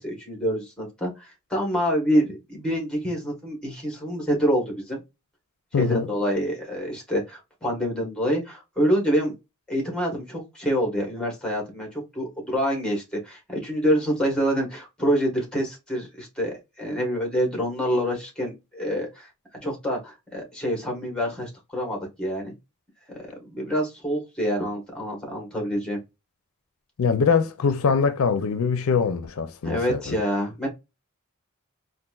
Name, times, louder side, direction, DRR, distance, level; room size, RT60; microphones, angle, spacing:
voice 1, 0.0-5.0 5.7-9.3 9.7-19.3 19.6-22.5 23.5-26.0 29.6-30.7, equal, 5° left, 1.3 m, -26 dB
voice 2, 5.7-6.1 27.0-30.2, left 5 dB, 75° left, 0.5 m, -23 dB
4.0 x 2.5 x 2.3 m
head